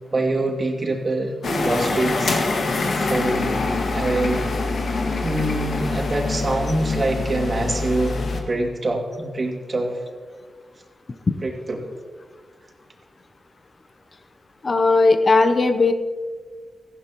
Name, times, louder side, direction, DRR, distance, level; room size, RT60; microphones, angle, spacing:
voice 1, 0.1-1.3 1.6-3.6 3.9-4.4 5.2-10.0 11.4-11.9, right 2 dB, 40° right, 1 dB, 2.4 m, -25 dB
sound 1, 1.4-8.4, left 3 dB, 70° left, 1.9 m, -24 dB
voice 2, 14.6-15.9, left 3 dB, 40° left, 8 dB, 0.8 m, -17 dB
18.0 x 15.0 x 3.0 m, 1.5 s
wide cardioid pair, 100°, 0 cm